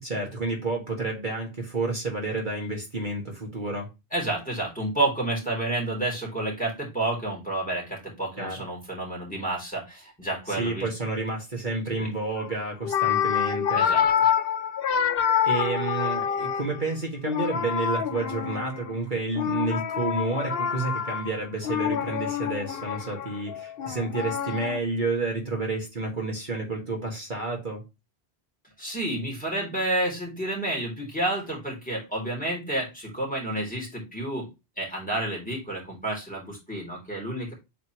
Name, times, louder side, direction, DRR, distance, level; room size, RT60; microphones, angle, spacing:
voice 1, 0.0-3.9 8.4-8.6 10.5-13.8 15.4-27.8, right 3 dB, 45° right, 2.0 m, -30 dB
voice 2, 4.1-10.9 12.0-12.1 13.7-14.1 28.8-34.5 34.8-37.5, right 1 dB, 5° left, 3.2 m, -30 dB
sound 1, 12.4-12.5 12.8-16.9 17.2-19.0 19.3-24.8, left 8 dB, 65° left, 0.8 m, -27 dB
8.0 x 4.2 x 3.0 m
omnidirectional pair, 1.1 m